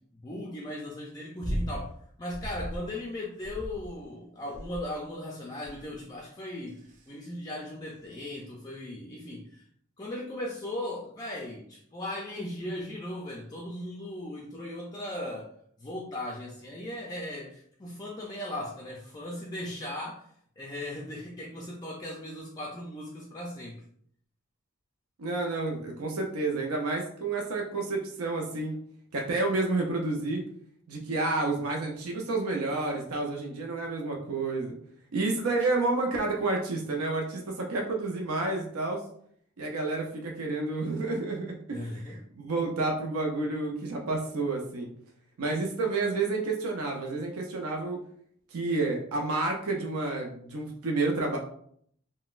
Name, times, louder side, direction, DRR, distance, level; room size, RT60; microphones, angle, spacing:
voice 1, 0.2-1.9 2.2-6.8 7.1-9.6 10.0-15.5 15.8-20.2 20.6-23.8 41.7-42.2, left 1 dB, 20° left, -2 dB, 0.4 m, -37 dB
sound 1, 1.4-1.8 2.3-2.9 3.4-4.0 4.5-5.0 5.6-6.0 6.7-7.0 8.0-8.1, equal, 35° right, 0.5 m, -36 dB
voice 2, 25.2-28.8 29.1-30.4 30.9-34.7 35.1-39.0 39.6-41.8 42.1-44.9 45.4-48.0 48.5-51.4, right 3 dB, 80° right, 1 dB, 0.5 m, -30 dB
3.8 x 2.1 x 2.4 m, 0.64 s
head